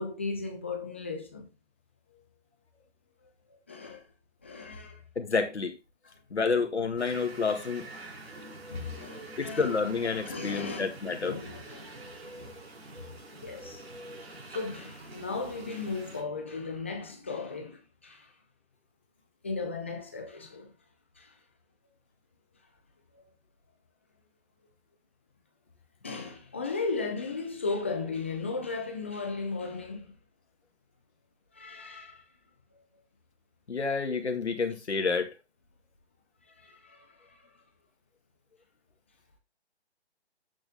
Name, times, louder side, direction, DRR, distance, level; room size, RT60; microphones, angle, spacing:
voice 1, 0.0-1.5 3.7-4.1 4.4-5.0 8.7-9.7 10.3-12.1 13.4-13.8 14.5-18.3 19.4-20.7 21.2-21.3 23.1-23.2 26.0-30.1 31.5-32.2 36.6-37.5, left 4 dB, 10° left, 0.5 m, -36 dB
voice 2, 5.2-5.8 6.3-7.9 9.4-11.4 33.7-35.3, left 4 dB, 85° left, 2.0 m, -29 dB
sound 1, 7.0-16.2, right 2 dB, 65° right, 4.2 m, -46 dB
8.8 x 6.3 x 3.5 m
hypercardioid pair, 160°, 33 cm